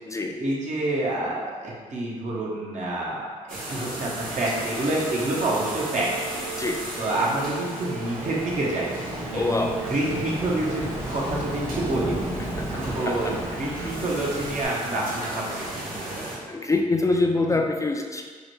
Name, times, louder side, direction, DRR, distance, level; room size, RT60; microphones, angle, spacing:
voice 1, 0.4-6.1 6.5-6.7 7.0-8.9 9.3-16.2, right 1 dB, 60° right, -4 dB, 0.9 m, -28 dB
sound 1, 3.5-16.4, right 2 dB, 85° right, 0.7 m, -34 dB
Thunderstorm / Rain, 6.9-14.6, right 1 dB, 15° right, 0.6 m, -35 dB
voice 2, 9.3-9.8 12.6-13.4 13.8-13.9 16.5-18.2, left 3 dB, 25° left, 2 dB, 0.3 m, -25 dB
4.5 x 2.2 x 3.1 m, 1.5 s
supercardioid pair, 55°, 14 cm